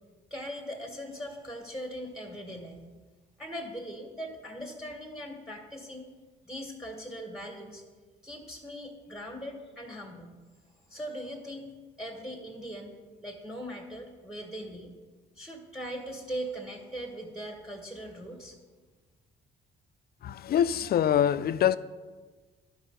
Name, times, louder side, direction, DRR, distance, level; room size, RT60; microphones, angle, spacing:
voice 1, 0.3-2.9 3.4-6.1 6.4-7.8 8.2-10.3 10.9-14.9 15.4-18.6, equal, 5° right, 1.5 m, -40 dB
voice 2, 20.2-21.8, left 9 dB, 50° left, 0.4 m, -24 dB
11.0 x 4.7 x 5.6 m
cardioid pair, 90°, 20 cm